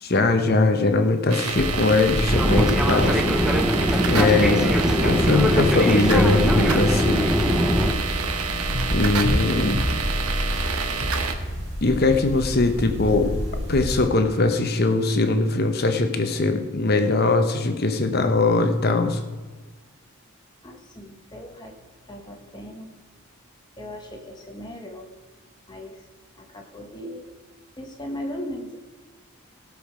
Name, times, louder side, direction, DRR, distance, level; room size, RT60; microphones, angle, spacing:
voice 1, 0.0-3.2 4.1-4.7 5.0-7.3 8.9-9.8 11.8-13.3 13.7-19.2, left 3 dB, 45° left, 6 dB, 0.9 m, -21 dB
sound 1, 1.3-11.3, right 5 dB, 80° right, 1.0 m, -28 dB
sound 2, 1.5-14.1, equal, 55° right, 3.3 m, -29 dB
Fixed-wing aircraft airplane, 2.3-7.9, equal, 5° right, 0.7 m, -21 dB
voice 2, 20.6-21.8 22.1-22.9 23.8-25.1 25.7-26.1 26.3-27.3 27.8-28.8, equal, 20° left, 2 dB, 1.3 m, -37 dB
16.5 x 6.5 x 5.1 m, 1.3 s
head